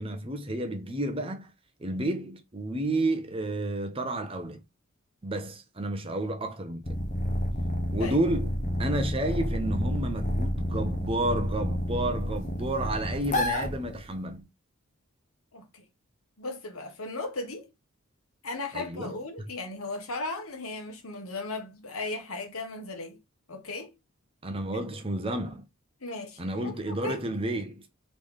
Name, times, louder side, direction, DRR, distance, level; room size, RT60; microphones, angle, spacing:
voice 1, 0.0-1.5 1.8-4.6 5.2-6.9 7.9-8.5 8.8-14.5 18.7-19.2 24.4-25.6 26.4-27.9, right 1 dB, 25° right, 0.7 m, -31 dB
sound 1, 6.8-14.3, equal, 35° left, 0.8 m, -30 dB
voice 2, 15.5-15.8 16.4-17.7 18.4-23.2 23.5-23.9 26.0-26.7 27.0-27.2, left 2 dB, 80° left, 1.4 m, -36 dB
4.0 x 3.3 x 3.5 m
head